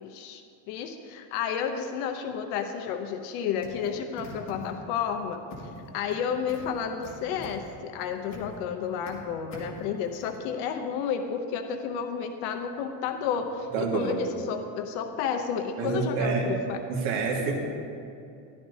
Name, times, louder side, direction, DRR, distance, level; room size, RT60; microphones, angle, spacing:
voice 1, 0.0-5.4 5.9-16.8, left 7 dB, 85° left, 6 dB, 0.8 m, -31 dB
sound 1, 3.6-5.0 5.5-6.2 6.5-8.6 8.8-9.1 9.5-10.4, left 1 dB, 25° left, 1.9 m, -44 dB
voice 2, 13.7-14.1 15.8-16.6 16.9-17.5, right 4 dB, 60° right, -2 dB, 2.0 m, -27 dB
14.0 x 11.5 x 2.7 m, 2.5 s
cardioid pair, 170°, 48 cm